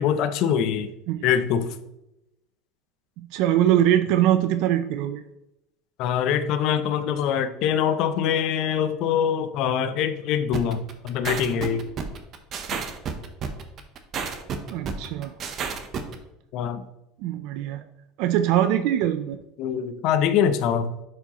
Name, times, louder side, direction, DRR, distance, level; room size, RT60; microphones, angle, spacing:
voice 1, 0.0-0.9 1.2-1.8 6.0-11.8 16.5-16.8 19.6-20.9, left 8 dB, 50° left, 10 dB, 0.6 m, -24 dB
voice 2, 3.2-5.2 14.7-15.3 17.2-17.8 18.2-19.4, right 11 dB, 60° right, 10 dB, 0.4 m, -22 dB
sound 1, 10.5-16.1, right 6 dB, 35° right, 0.8 m, -31 dB
10.5 x 4.7 x 3.0 m, 0.88 s
cardioid pair, 155°, 0 cm